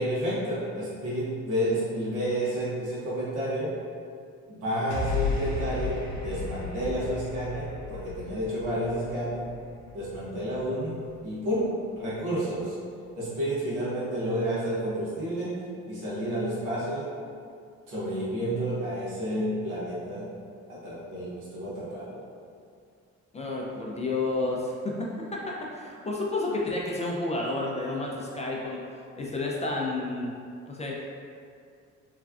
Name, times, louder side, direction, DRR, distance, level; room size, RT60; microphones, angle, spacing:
voice 1, 0.0-3.7 4.5-9.5 9.9-11.0 11.2-12.8 13.1-17.1 17.9-20.3 20.7-22.2, equal, 85° right, -9 dB, 1.1 m, -30 dB
sound 1, 4.9-11.3, left 4 dB, 75° left, 0.7 m, -35 dB
voice 2, 23.3-28.8 29.2-30.3 30.7-31.1, left 2 dB, 25° left, -3 dB, 0.4 m, -31 dB
3.1 x 2.3 x 2.4 m, 2.3 s
cardioid pair, 90°, 30 cm